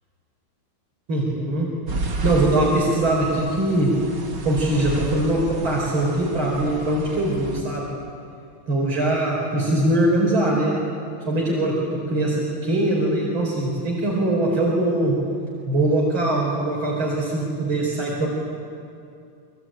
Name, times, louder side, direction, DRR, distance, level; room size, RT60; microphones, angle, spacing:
voice 1, 1.1-1.7 2.2-3.9 4.4-7.9 8.7-10.8 11.3-11.7 12.1-15.1 15.7-18.3, right 1 dB, 75° right, -4 dB, 5.4 m, -22 dB
sound 1, 1.9-7.6, right 2 dB, 55° right, 3.0 m, -32 dB
25.5 x 24.0 x 9.0 m, 2.5 s
omnidirectional pair, 2.3 m